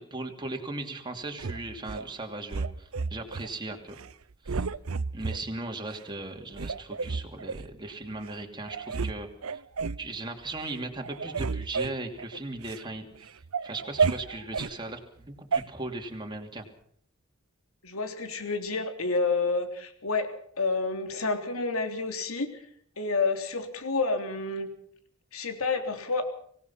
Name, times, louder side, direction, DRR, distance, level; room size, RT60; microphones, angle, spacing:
voice 1, 0.0-4.0 4.4-4.7 5.1-9.6 10.0-16.6, right 2 dB, 20° right, 3 dB, 2.9 m, -38 dB
sound 1, 1.4-2.1 2.5-3.5 3.9-4.1 4.5-5.4 5.9-6.0 6.5-7.7 8.3-8.4 8.7-9.1 9.4-10.1 10.5-10.8 11.0-12.8 13.2-14.7 15.5-15.6, right 5 dB, 80° right, 0.8 m, -31 dB
voice 2, 17.8-20.3 20.6-22.6 23.0-24.7 25.3-26.3, left 3 dB, 85° left, 6 dB, 3.5 m, -29 dB
25.0 x 18.0 x 5.8 m, 0.63 s
head